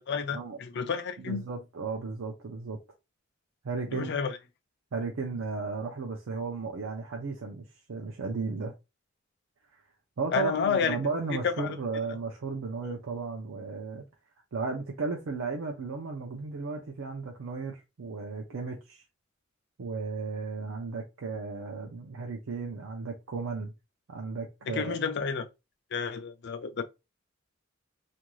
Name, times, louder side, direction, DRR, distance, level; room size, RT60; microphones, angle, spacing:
voice 1, 0.1-1.4 3.9-4.4 10.3-11.0 11.4-11.7 24.7-25.5 25.9-26.8, left 6 dB, 60° left, 0.5 m, -30 dB
voice 2, 1.2-2.8 3.6-4.1 4.9-8.7 9.7-9.8 10.2-14.1 14.5-19.0 19.8-23.7 24.1-25.0, right 4 dB, 75° right, 0.5 m, -35 dB
2.6 x 2.2 x 3.0 m
head